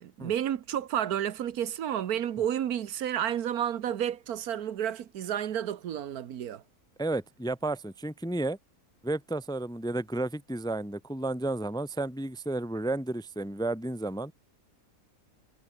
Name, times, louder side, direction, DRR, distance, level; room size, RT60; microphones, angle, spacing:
voice 1, 0.0-6.6, right 10 dB, 85° right, 1.5 m, -31 dB
voice 2, 7.0-8.6 9.0-14.3, right 2 dB, 5° left, 0.6 m, -32 dB
omnidirectional pair, 1.5 m